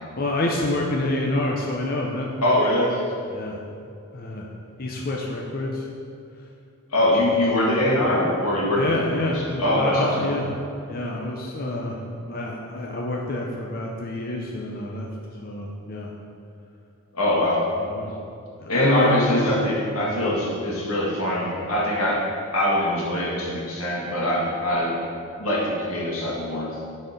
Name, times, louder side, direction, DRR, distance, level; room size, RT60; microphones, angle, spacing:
voice 1, 0.2-2.3 3.3-3.6 4.1-4.5 4.8-5.8 7.8-8.0 8.7-10.5 10.9-15.1 15.4-16.1 17.8-18.1 18.6-19.5 20.0-20.2, left 1 dB, 45° left, -1 dB, 0.6 m, -27 dB
voice 2, 2.4-3.0 6.9-10.3 17.1-17.6 18.7-22.2 22.5-25.0 25.4-26.8, left 1 dB, 90° left, -4 dB, 1.8 m, -23 dB
8.3 x 4.2 x 5.1 m, 2.5 s
head